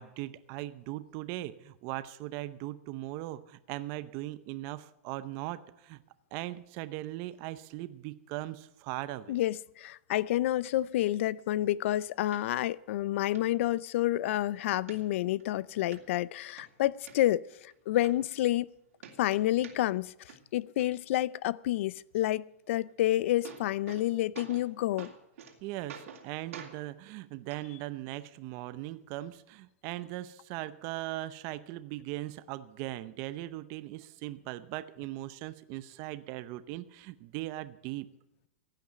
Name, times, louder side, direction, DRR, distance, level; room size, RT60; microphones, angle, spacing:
voice 1, 0.0-6.0 6.3-9.4 25.6-38.1, right 16 dB, 40° right, 0.7 m, -39 dB
voice 2, 9.3-18.7 19.2-25.1, left 14 dB, 65° left, 0.5 m, -29 dB
sound 1, 12.3-12.4 12.9-13.0 13.3-13.4 13.9-14.4 14.9-15.5 15.9-16.0 16.4-17.1 17.7-17.8 18.0-18.7 19.0-20.0 20.3-20.8 22.9-23.0 23.2-24.1 24.3-24.7 25.0-25.5 25.9-26.3 26.5-26.7 27.5-27.6 28.5-28.6, right 7 dB, 80° right, 2.9 m, -47 dB
15.0 x 9.1 x 7.8 m
supercardioid pair, 145°, 7 cm